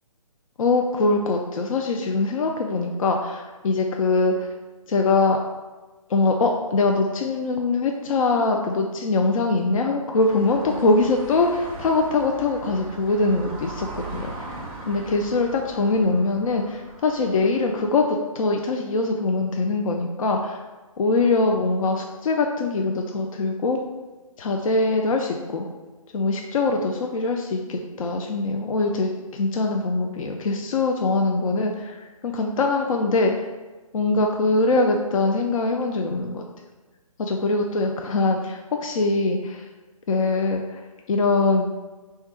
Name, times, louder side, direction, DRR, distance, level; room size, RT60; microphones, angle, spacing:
voice 1, 0.6-4.5 4.9-5.4 6.1-14.6 14.9-20.6 21.0-23.8 24.4-25.7 26.1-33.3 33.9-36.4 37.2-39.6 40.1-40.8 41.1-41.7, left 3 dB, 65° left, 2 dB, 0.4 m, -23 dB
sound 1, 10.2-18.0, right 2 dB, 15° right, 0.5 m, -39 dB
3.5 x 2.3 x 4.4 m, 1.3 s
figure-of-eight pair, 140°, 18 cm